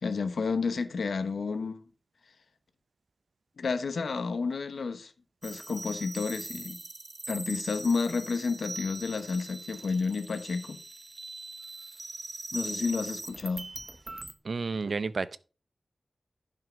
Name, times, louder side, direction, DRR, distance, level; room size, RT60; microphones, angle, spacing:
voice 1, 0.0-1.9 3.6-5.1 5.4-6.8 7.3-10.8 12.5-13.7, left 4 dB, 85° left, 1.1 m, -31 dB
sound 1, 5.4-14.3, right 2 dB, 30° right, 1.0 m, -41 dB
voice 2, 14.5-15.4, right 4 dB, 60° right, 0.6 m, -31 dB
11.0 x 5.8 x 5.1 m
wide cardioid pair, 110°, 0 cm